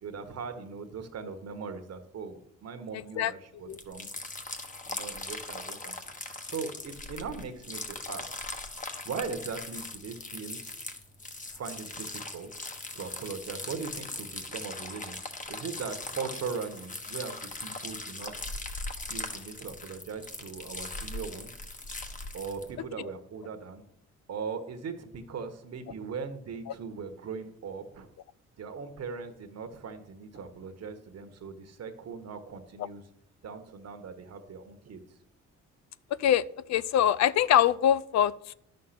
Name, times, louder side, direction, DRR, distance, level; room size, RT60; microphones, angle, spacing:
voice 1, 0.0-4.1 4.8-5.9 6.5-8.2 9.0-10.6 11.5-15.2 15.5-18.5 19.0-21.5 22.3-23.8 24.3-28.1 28.6-33.0 33.4-35.2, right 5 dB, 55° right, 7 dB, 1.4 m, -39 dB
sound 1, 3.7-22.7, left 2 dB, 25° left, 1.4 m, -40 dB
voice 2, 36.7-38.5, left 10 dB, 65° left, 18 dB, 0.5 m, -23 dB
11.0 x 6.6 x 5.9 m, 0.78 s
cardioid pair, 90°, 30 cm